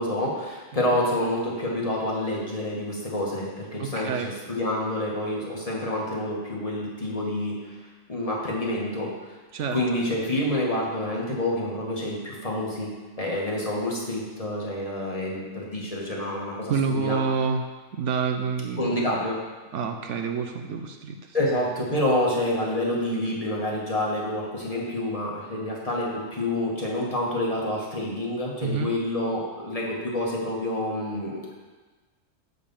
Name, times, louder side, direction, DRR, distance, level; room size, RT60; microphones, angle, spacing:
voice 1, 0.0-7.8 8.1-9.1 9.7-12.9 13.2-17.2 18.8-19.4 21.3-31.4, left 1 dB, 30° left, -4 dB, 1.8 m, -28 dB
voice 2, 3.8-4.3 9.5-10.0 16.7-17.6 17.9-19.2 19.7-21.4 28.6-28.9, right 5 dB, 70° right, 5 dB, 1.0 m, -28 dB
10.0 x 4.1 x 7.1 m, 1.3 s
omnidirectional pair, 1.3 m